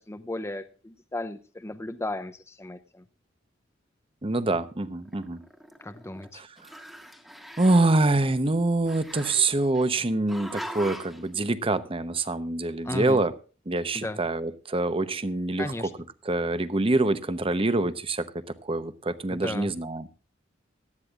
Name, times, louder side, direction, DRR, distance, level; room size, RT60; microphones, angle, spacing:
voice 1, 0.1-3.0 5.8-6.4 12.8-13.2 13.9-14.2 15.6-15.9 19.3-19.7, left 1 dB, 15° left, 9 dB, 0.6 m, -35 dB
voice 2, 4.2-5.4 6.4-6.5 7.6-13.3 13.7-15.7 16.3-18.3 18.6-20.1, right 2 dB, 30° right, 13 dB, 0.8 m, -25 dB
Growling, 5.1-6.3 6.6-8.0 8.9-9.9 10.3-11.2, equal, ahead, 1.5 m, -41 dB
18.0 x 12.5 x 2.4 m, 0.36 s
head